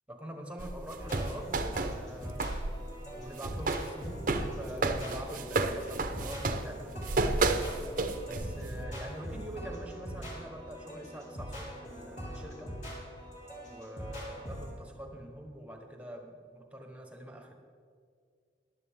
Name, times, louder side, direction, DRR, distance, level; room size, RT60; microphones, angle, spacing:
voice 1, 0.1-2.6 3.1-7.6 8.2-12.8 13.6-17.5, right 1 dB, 5° right, 3 dB, 1.2 m, -45 dB
sound 1, 0.6-2.7 3.0-8.7, right 3 dB, 45° right, 0.7 m, -31 dB
sound 2, 1.0-14.7, equal, 40° left, 3.1 m, -42 dB
14.5 x 11.0 x 3.6 m, 2.1 s
head